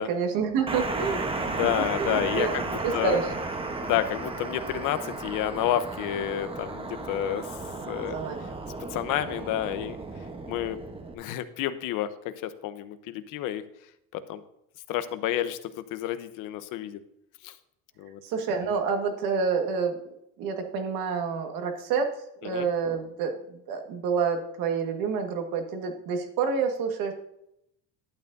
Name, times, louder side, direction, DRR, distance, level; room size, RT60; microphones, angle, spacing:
voice 1, 0.0-1.5 2.0-3.3 8.1-8.5 18.3-19.9 20.4-22.1 22.4-27.1, right 5 dB, 80° right, 5 dB, 1.6 m, -28 dB
sound 1, 0.7-11.1, right 3 dB, 15° right, 0.9 m, -34 dB
voice 2, 1.6-3.2 3.8-7.5 7.9-8.2 8.9-10.0 10.5-10.8 11.1-12.1 12.4-13.6 14.1-14.4 14.9-15.6 15.9-17.0 17.4-17.5 18.0-18.2 22.4-22.7, left 11 dB, 75° left, 12 dB, 0.8 m, -29 dB
11.5 x 9.2 x 2.6 m, 0.80 s
cardioid pair, 140°, 33 cm